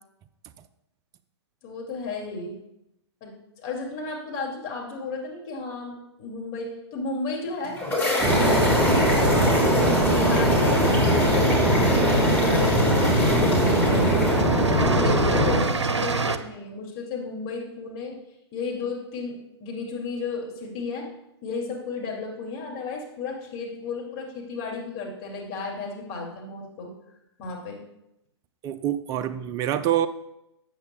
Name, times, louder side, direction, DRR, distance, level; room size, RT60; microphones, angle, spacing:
voice 1, 1.6-2.6 3.2-7.8 8.1-14.1 14.7-18.2 18.5-21.1 21.4-26.9 27.4-27.8, left 4 dB, 35° left, -1 dB, 2.3 m, -34 dB
sound 1, 7.4-14.9, left 1 dB, 10° left, 2.5 m, -30 dB
sound 2, 8.2-15.6, equal, 5° right, 1.5 m, -20 dB
sound 3, 11.0-11.9 12.7-12.9 13.2-16.4, right 4 dB, 85° right, 0.6 m, -28 dB
voice 2, 28.6-30.1, right 11 dB, 25° right, 11 dB, 0.4 m, -26 dB
12.5 x 8.0 x 2.2 m, 0.85 s
figure-of-eight pair, 120°, 15 cm